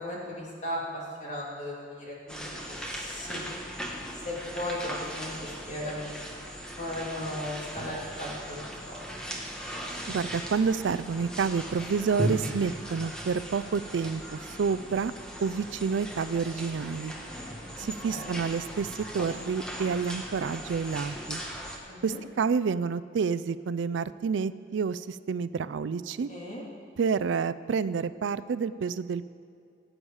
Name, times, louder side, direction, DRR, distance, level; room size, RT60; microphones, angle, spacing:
voice 1, 0.0-3.4 4.1-6.2 6.8-9.0 17.7-18.4 21.9-22.2 26.3-26.6, left 1 dB, 40° left, -4 dB, 2.8 m, -37 dB
sound 1, 2.3-21.8, equal, 5° left, 1.2 m, -38 dB
voice 2, 10.1-15.1 15.4-17.1 17.8-21.4 22.0-26.3 27.0-29.3, right 5 dB, 75° right, 15 dB, 0.4 m, -29 dB
17.5 x 8.7 x 4.8 m, 2.5 s
head